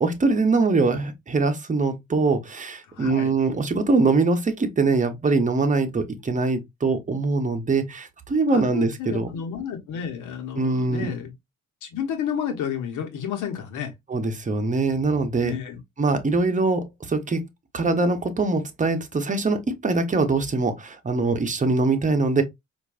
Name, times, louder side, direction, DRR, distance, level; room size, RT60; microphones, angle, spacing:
voice 1, 0.0-9.3 10.6-11.1 14.1-15.5 16.0-17.4 17.7-22.4, right 3 dB, 25° right, 0.9 m, -23 dB
voice 2, 2.9-3.4 8.5-11.3 11.8-13.9 15.4-15.8, left 8 dB, 85° left, 1.1 m, -31 dB
4.4 x 2.6 x 2.4 m
cardioid pair, 90°, 30 cm